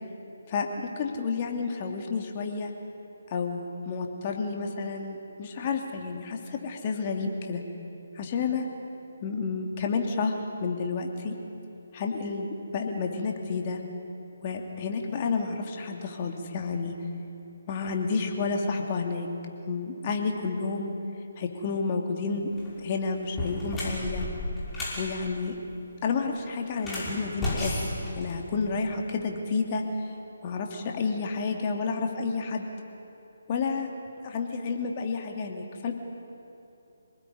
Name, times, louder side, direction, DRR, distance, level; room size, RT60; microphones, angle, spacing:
voice 1, 0.5-2.7 3.3-7.6 8.1-8.7 9.2-11.3 11.9-13.8 14.4-16.9 17.7-19.3 19.7-20.9 21.4-22.5 22.8-24.3 24.9-25.5 26.0-30.1 30.4-32.7 33.5-33.9 34.2-35.9, left 4 dB, 30° left, 3 dB, 2.8 m, -30 dB
sound 1, 22.4-22.7 23.2-25.1 26.7-28.8, left 1 dB, 10° left, 5.7 m, -32 dB
27.0 x 19.5 x 9.7 m, 2.8 s
figure-of-eight pair, 145°, 0 cm